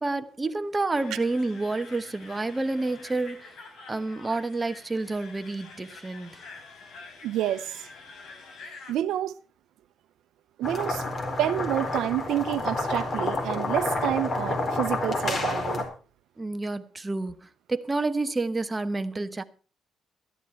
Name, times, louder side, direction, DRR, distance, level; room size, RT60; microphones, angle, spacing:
voice 1, 0.0-3.6 3.9-6.4 16.4-19.4, right 2 dB, 20° right, 1.0 m, -29 dB
sound 1, 0.9-8.9, left 4 dB, 75° left, 3.8 m, -47 dB
voice 2, 7.2-7.9 8.9-9.3 10.6-11.0 11.4-15.8, right 12 dB, 80° right, 0.7 m, -28 dB
sound 2, 10.6-15.9, left 2 dB, 45° left, 4.2 m, -29 dB
13.5 x 11.0 x 4.5 m
cardioid pair, 90°, 0 cm